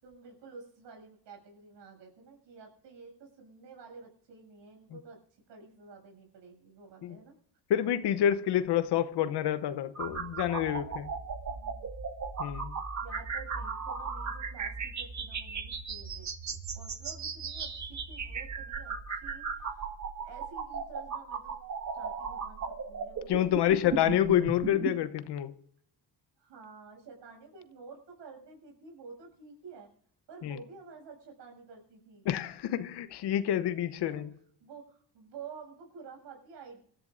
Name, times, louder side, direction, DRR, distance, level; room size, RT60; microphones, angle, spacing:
voice 1, 0.0-7.4 11.5-11.9 13.0-19.9 20.2-21.6 21.9-24.4 26.4-29.9 30.3-32.3 34.0-34.3 34.6-36.8, right 5 dB, 80° right, 7.4 m, -51 dB
voice 2, 7.7-11.1 12.4-12.7 23.3-25.5 30.4-30.6 32.2-34.3, left 11 dB, 70° left, 1.0 m, -28 dB
sound 1, 9.9-24.9, right 5 dB, 40° right, 1.9 m, -37 dB
27.5 x 14.0 x 2.6 m
cardioid pair, 115°, 43 cm